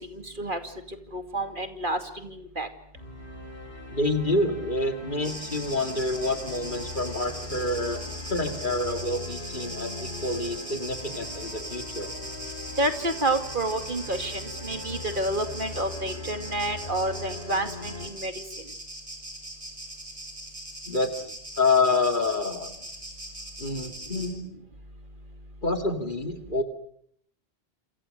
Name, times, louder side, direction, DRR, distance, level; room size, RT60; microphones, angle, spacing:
voice 1, 0.1-0.6 1.1-2.7 12.8-18.3, right 1 dB, 50° right, 7 dB, 2.6 m, -29 dB
sound 1, 2.9-18.1, left 2 dB, 80° left, 4.9 m, -40 dB
voice 2, 3.9-12.1 20.9-21.3 21.6-22.7 23.6-24.4 25.6-26.6, left 2 dB, 50° left, 6 dB, 2.5 m, -27 dB
sound 2, 5.2-24.3, right 1 dB, 30° right, 6.3 m, -40 dB
28.5 x 28.0 x 6.6 m, 0.67 s
omnidirectional pair, 1.1 m